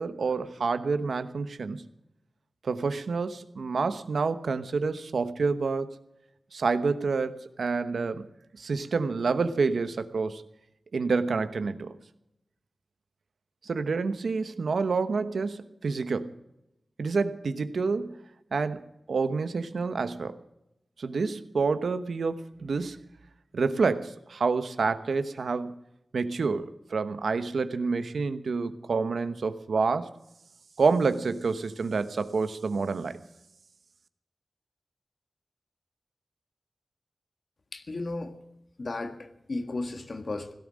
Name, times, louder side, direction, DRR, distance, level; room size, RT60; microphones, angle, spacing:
voice 1, 0.0-1.9 2.6-6.0 6.5-8.2 8.6-10.4 10.9-11.9 13.6-16.3 17.0-18.2 18.5-18.8 19.1-20.4 21.0-23.0 23.5-25.7 26.1-30.1 30.8-33.2, right 4 dB, 85° right, 11 dB, 1.0 m, -28 dB
voice 2, 37.7-38.4 38.8-40.5, left 2 dB, 55° left, 8 dB, 1.6 m, -34 dB
17.0 x 12.5 x 6.3 m, 0.86 s
wide cardioid pair, 70°, 0 cm